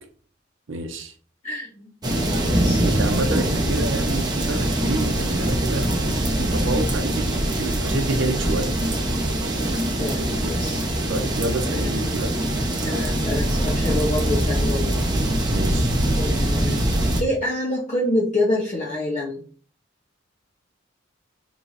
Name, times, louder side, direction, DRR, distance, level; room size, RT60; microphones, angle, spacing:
voice 1, 0.7-1.1 2.8-5.9 6.3-8.7 11.1-12.3 15.5-15.9, right 2 dB, 70° right, 0.7 m, -28 dB
voice 2, 1.4-1.9 2.2-2.8 3.3-3.4 10.0-10.9 11.6-12.0 12.8-15.0 16.2-16.8 17.2-19.4, left 1 dB, 40° left, 0.8 m, -27 dB
sound 1, 2.0-17.2, right 1 dB, 20° right, 0.7 m, -23 dB
3.0 x 2.6 x 4.0 m
head